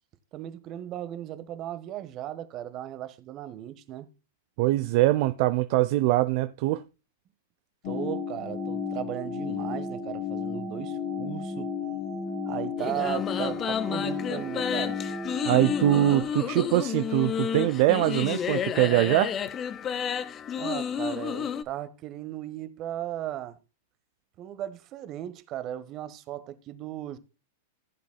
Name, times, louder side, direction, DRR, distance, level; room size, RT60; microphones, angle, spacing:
voice 1, 0.3-4.1 7.8-11.7 12.4-15.0 20.6-23.6 24.4-27.2, right 12 dB, 40° right, 1.3 m, -36 dB
voice 2, 4.6-6.8 15.4-19.4, right 16 dB, 55° right, 0.5 m, -23 dB
sound 1, 7.8-16.2, left 5 dB, 55° left, 2.6 m, -33 dB
sound 2, 12.8-21.6, left 8 dB, 30° left, 0.8 m, -31 dB
16.0 x 7.4 x 2.2 m
hypercardioid pair, 110°, 0 cm